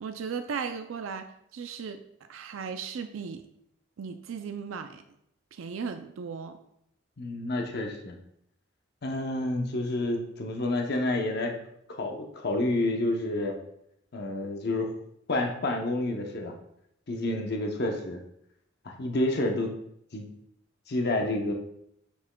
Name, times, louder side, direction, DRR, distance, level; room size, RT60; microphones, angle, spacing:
voice 1, 0.0-2.0 2.3-3.4 4.0-5.0 5.5-6.6, right 6 dB, 75° right, 7 dB, 0.4 m, -36 dB
voice 2, 7.2-8.2 9.0-11.6 12.0-13.6 14.1-14.9 15.3-16.5 17.1-18.2 18.8-19.7 20.1-20.3 20.9-21.5, left 2 dB, 55° left, 3 dB, 0.7 m, -29 dB
7.2 x 6.9 x 2.2 m, 0.76 s
head